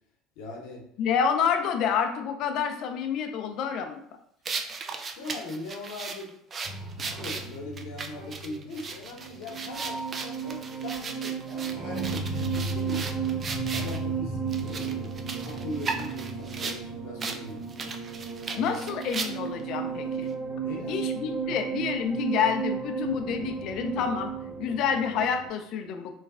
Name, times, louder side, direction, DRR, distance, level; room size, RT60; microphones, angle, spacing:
voice 1, 0.4-0.8 5.2-6.3 7.0-13.2 13.7-17.9 18.5-18.7 20.6-21.5, left 2 dB, 75° left, 0 dB, 0.9 m, -40 dB
voice 2, 1.0-4.0 18.6-20.3 20.9-24.3 24.6-26.1, left 7 dB, 60° left, 6 dB, 0.4 m, -28 dB
sound 1, 4.4-14.0 14.5-16.8 17.2-17.4 17.7-19.6, right 4 dB, 35° right, 0.4 m, -37 dB
sound 2, 6.6-25.5, right 5 dB, 65° right, 1.3 m, -34 dB
3.1 x 2.3 x 3.5 m, 0.68 s
supercardioid pair, 110°, 0 cm